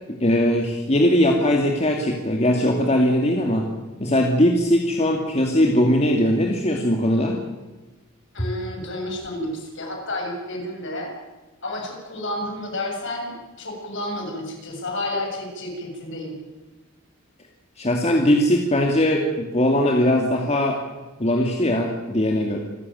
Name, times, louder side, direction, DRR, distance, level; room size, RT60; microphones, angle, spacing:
voice 1, 0.1-3.7 4.0-7.4 17.8-20.8 21.2-22.6, left 1 dB, 30° left, 2 dB, 2.3 m, -20 dB
voice 2, 8.3-11.1 11.6-16.3, left 1 dB, 60° left, 1 dB, 7.5 m, -31 dB
26.5 x 14.5 x 9.4 m, 1.2 s
head